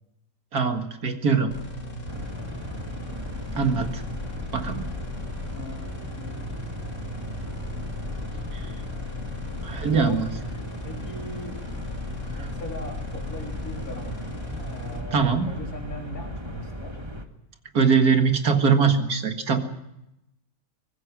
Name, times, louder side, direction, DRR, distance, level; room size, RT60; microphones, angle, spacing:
voice 1, 0.5-1.5 3.6-3.9 4.5-4.9 9.6-10.3 15.1-15.5 17.7-19.6, right 5 dB, 80° right, 6 dB, 2.5 m, -22 dB
sound 1, 1.5-15.0, left 3 dB, 55° left, 2.9 m, -38 dB
voice 2, 1.8-2.5 5.6-6.5 9.7-10.2 10.8-11.6 12.3-14.3 14.6-17.0, left 1 dB, 75° left, 0 dB, 4.2 m, -40 dB
sound 2, 2.1-17.2, equal, 20° right, 1.8 m, -36 dB
24.0 x 20.0 x 6.2 m, 0.86 s
omnidirectional pair, 1.6 m